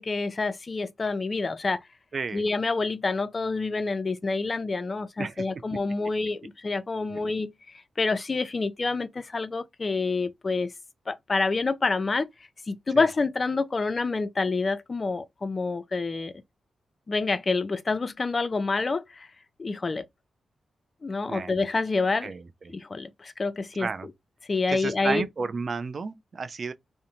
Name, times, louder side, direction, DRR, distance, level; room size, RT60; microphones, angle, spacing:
voice 1, 0.0-1.8 2.3-10.7 11.1-12.3 12.7-16.3 17.1-19.3 19.6-20.0 21.0-22.3 22.7-24.1 24.5-25.3, left 3 dB, 40° left, 0.4 m, -27 dB
voice 2, 2.1-2.4 5.2-5.4 7.1-7.2 13.0-13.1 21.3-21.6 22.2-22.4 23.8-24.1 24.7-26.7, right 4 dB, 55° right, 0.4 m, -32 dB
2.5 x 2.1 x 2.9 m
cardioid pair, 55°, 0 cm